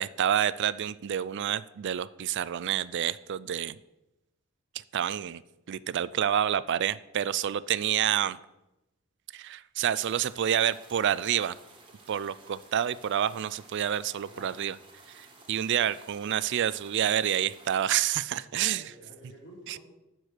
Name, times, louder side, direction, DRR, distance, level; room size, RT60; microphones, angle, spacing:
voice 1, 0.0-3.8 4.9-5.4 5.7-8.4 9.3-11.6 12.1-14.8 15.2-18.8, right 10 dB, 55° right, 18 dB, 0.4 m, -28 dB
sound 1, 10.0-18.0, right 3 dB, 25° right, 1.6 m, -54 dB
voice 2, 14.0-14.7 18.4-19.8, equal, 60° left, -5 dB, 4.3 m, -51 dB
11.5 x 4.7 x 6.6 m, 0.95 s
head